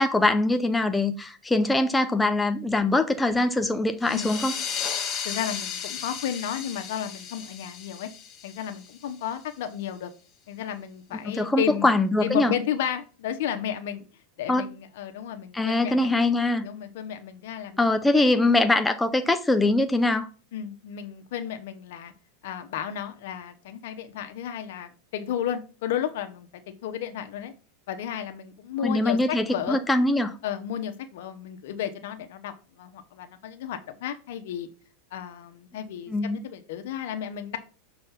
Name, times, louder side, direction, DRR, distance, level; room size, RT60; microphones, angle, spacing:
voice 1, 0.0-4.6 11.3-12.5 14.5-14.6 15.5-16.6 17.8-20.3 28.8-30.3 36.1-36.4, left 2 dB, 10° left, 0.7 m, -23 dB
sound 1, 4.0-9.3, left 7 dB, 30° left, 1.5 m, -35 dB
voice 2, 5.2-8.1 8.4-10.1 10.5-11.9 12.2-14.0 14.4-16.1 16.6-17.8 20.5-22.1 22.4-27.5 27.9-29.8 30.4-34.7 35.1-37.6, left 9 dB, 70° left, 1.0 m, -33 dB
6.7 x 4.3 x 5.7 m
supercardioid pair, 130°, 0 cm